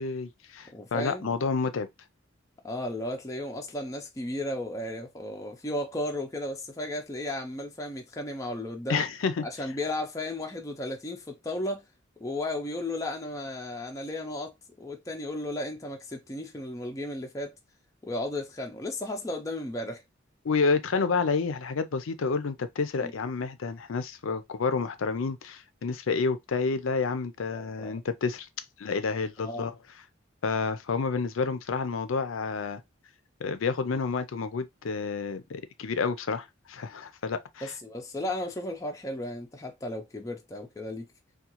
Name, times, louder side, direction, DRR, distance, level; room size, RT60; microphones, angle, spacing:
voice 1, 0.0-1.9 8.9-9.4 20.4-28.5 28.8-29.7 30.4-32.8 33.4-37.7, left 4 dB, 80° left, 0.5 m, -29 dB
voice 2, 0.7-1.3 2.6-9.0 9.4-11.8 12.2-17.5 18.0-20.0 23.0-23.1 27.5-27.9 29.4-29.7 37.6-41.1, left 1 dB, 15° left, 0.4 m, -34 dB
3.6 x 2.3 x 2.9 m
head